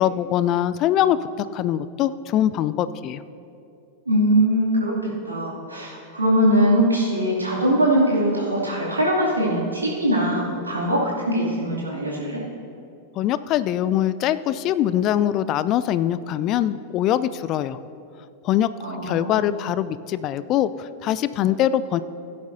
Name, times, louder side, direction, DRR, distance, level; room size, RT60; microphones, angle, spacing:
voice 1, 0.0-3.2 13.2-17.8 18.4-18.7 19.0-22.0, left 11 dB, 35° left, 15 dB, 0.3 m, -23 dB
voice 2, 4.1-12.4 18.8-19.3, right 1 dB, 80° right, -5 dB, 2.5 m, -21 dB
16.5 x 10.0 x 2.7 m, 2.6 s
figure-of-eight pair, 90°, 0 cm